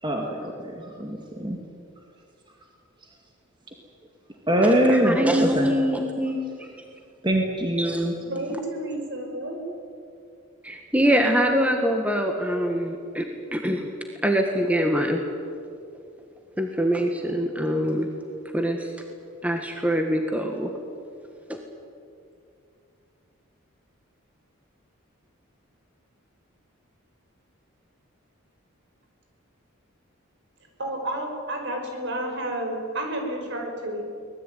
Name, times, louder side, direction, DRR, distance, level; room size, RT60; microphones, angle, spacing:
voice 1, 0.0-1.6 3.0-3.1 4.5-5.7 7.2-8.2, right 1 dB, 20° right, 1 dB, 2.1 m, -23 dB
voice 2, 4.6-6.7 7.8-8.0 10.6-13.9 14.2-15.2 16.6-18.1 18.5-18.9 19.4-20.7 21.5-21.6, equal, 5° right, 3 dB, 1.7 m, -24 dB
voice 3, 8.3-9.6 30.8-34.0, right 1 dB, 55° right, 3 dB, 5.7 m, -31 dB
24.5 x 19.5 x 9.3 m, 2.4 s
head